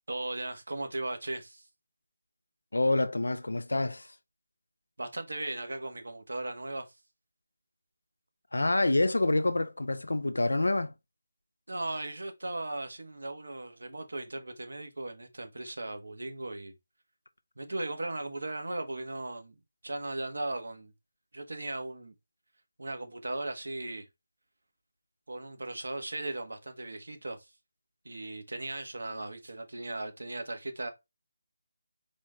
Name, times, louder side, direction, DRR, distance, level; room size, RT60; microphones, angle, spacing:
voice 1, 0.1-1.7 5.0-6.9 11.7-16.7 17.6-20.9 21.3-22.1 22.8-24.1 25.3-27.5 28.0-30.9, right 2 dB, 75° right, 1.4 m, -37 dB
voice 2, 2.7-4.1 8.5-10.9, left 2 dB, 80° left, 0.7 m, -27 dB
4.3 x 3.8 x 3.1 m
figure-of-eight pair, 160°, 0 cm